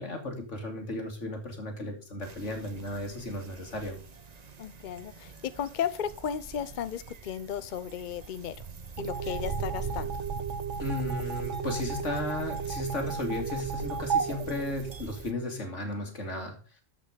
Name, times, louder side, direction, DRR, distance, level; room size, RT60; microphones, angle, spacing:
voice 1, 0.0-4.0 10.8-16.6, left 2 dB, 70° left, 3 dB, 2.7 m, -35 dB
sound 1, 2.2-15.3, right 5 dB, 35° right, 0.9 m, -42 dB
voice 2, 4.6-8.7 9.0-10.2, left 8 dB, 55° left, 15 dB, 0.6 m, -35 dB
sound 2, 9.0-15.5, right 6 dB, 75° right, 1.3 m, -34 dB
13.0 x 5.2 x 5.0 m, 0.37 s
omnidirectional pair, 1.3 m